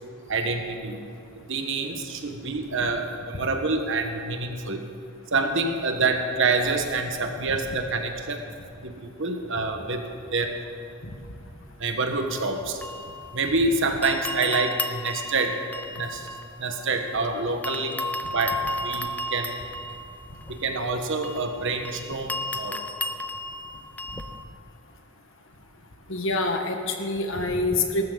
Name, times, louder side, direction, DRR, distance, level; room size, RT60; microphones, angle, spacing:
voice 1, 0.3-1.0 1.5-4.8 5.3-8.4 8.8-10.0 10.3-10.6 11.8-12.8 13.3-15.6 15.9-16.3 16.6-18.0 18.3-19.5 20.5-22.8, right 3 dB, 65° right, 5 dB, 1.4 m, -27 dB
sound 1, 12.2-13.7 14.0-17.2 17.6-24.4, left 1 dB, 10° left, 0.4 m, -34 dB
voice 2, 26.1-28.0, left 2 dB, 65° left, 4 dB, 1.5 m, -26 dB
18.5 x 13.5 x 4.0 m, 2.6 s
head